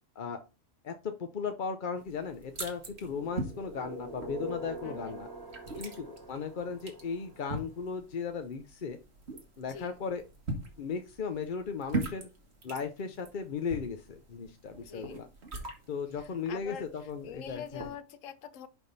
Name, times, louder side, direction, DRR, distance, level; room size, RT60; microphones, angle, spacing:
voice 1, 0.8-5.3 5.8-9.0 9.6-10.2 10.8-12.3 12.6-15.3 15.9-17.9, left 5 dB, 50° left, 0.7 m, -36 dB
sound 1, 2.0-17.9, right 2 dB, 55° right, 2.1 m, -43 dB
sound 2, 2.9-7.8, right 1 dB, 15° right, 1.9 m, -44 dB
voice 2, 4.8-5.2 9.7-9.9 14.8-15.2 16.2-18.7, left 8 dB, 80° left, 1.1 m, -45 dB
10.5 x 3.6 x 4.0 m
omnidirectional pair, 1.3 m